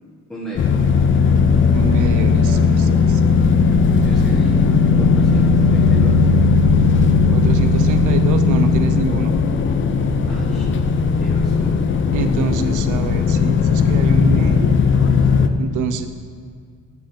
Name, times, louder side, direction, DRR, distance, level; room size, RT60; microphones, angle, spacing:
voice 1, 0.3-0.7 3.7-4.6 5.0-6.2 10.3-10.7 11.2-11.7, equal, 5° left, -8 dB, 1.3 m, -34 dB
sound 1, 0.6-15.5, left 5 dB, 40° left, 0.5 m, -16 dB
voice 2, 1.7-3.2 7.3-9.3 12.1-14.8 15.6-16.1, right 7 dB, 85° right, 9 dB, 0.6 m, -26 dB
7.6 x 5.7 x 4.3 m, 2.1 s
cardioid pair, 90°, 30 cm